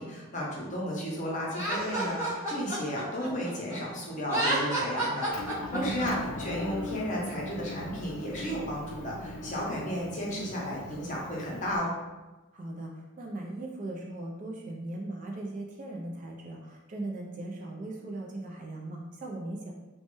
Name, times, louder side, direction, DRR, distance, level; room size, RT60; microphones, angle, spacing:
voice 1, 0.0-11.9, equal, 35° left, -4 dB, 0.7 m, -33 dB
Laughter, 1.5-3.8 4.2-6.1, right 1 dB, 15° right, 0.8 m, -30 dB
Motor vehicle (road) / Engine, 5.3-11.8, left 1 dB, 80° left, 0.4 m, -39 dB
voice 2, 5.9-6.2 12.5-19.7, right 2 dB, 35° right, 0 dB, 0.3 m, -38 dB
3.1 x 2.1 x 3.0 m, 1.1 s
head